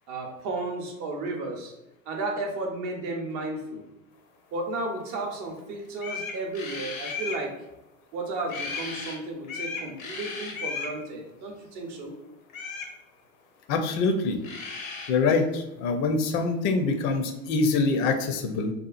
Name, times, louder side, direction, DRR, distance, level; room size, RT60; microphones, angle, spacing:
voice 1, 0.1-1.7 2.1-3.8 4.5-7.5 8.1-12.2, right 2 dB, 45° right, 2 dB, 0.7 m, -33 dB
sound 1, 5.6-5.7 6.0-7.4 8.5-9.2 9.4-10.9 12.5-12.9 14.1-14.2 14.4-15.1, left 4 dB, 80° left, 0.7 m, -35 dB
voice 2, 13.7-14.4 15.1-18.7, left 4 dB, 45° left, 6 dB, 0.5 m, -25 dB
2.7 x 2.3 x 2.4 m, 0.95 s
hypercardioid pair, 85°, 41 cm